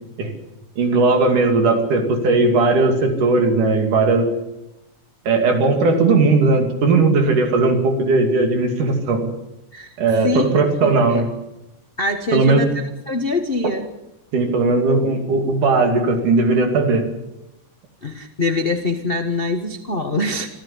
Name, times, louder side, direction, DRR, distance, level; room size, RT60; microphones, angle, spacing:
voice 1, 0.8-4.3 5.3-9.2 10.0-11.3 12.3-12.6 14.3-17.1, right 3 dB, 85° right, 4 dB, 4.2 m, -17 dB
voice 2, 10.8-11.2 12.0-13.9 18.0-20.5, left 2 dB, 75° left, 6 dB, 0.5 m, -23 dB
26.0 x 14.5 x 8.4 m, 0.93 s
omnidirectional pair, 3.5 m